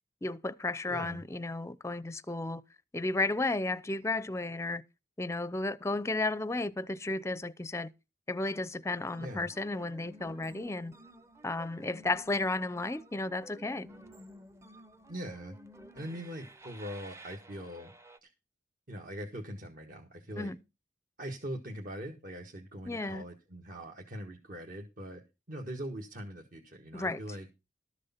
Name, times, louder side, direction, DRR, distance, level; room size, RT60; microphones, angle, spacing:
voice 1, 0.2-2.6 2.9-4.8 5.2-7.9 8.3-10.9 11.4-13.9 20.4-20.6 22.9-23.2 26.9-27.2, left 2 dB, 15° left, 0.6 m, -33 dB
voice 2, 0.9-1.2 9.2-9.5 15.1-15.5 15.9-17.9 18.2-18.3 18.9-20.5 21.2-25.2 25.5-27.5, equal, 50° right, 1.6 m, -42 dB
sound 1, 8.9-18.2, right 1 dB, 15° right, 0.8 m, -53 dB
13.0 x 6.7 x 5.7 m
head